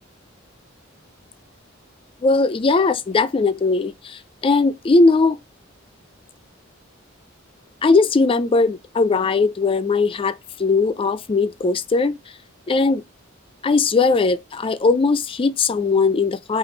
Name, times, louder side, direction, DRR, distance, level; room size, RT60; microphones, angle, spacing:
voice 1, 2.2-5.4 7.8-10.3 10.6-12.2 12.7-13.0 13.6-16.6, left 3 dB, 25° left, 0.3 m, -19 dB
5.1 x 2.4 x 3.8 m
head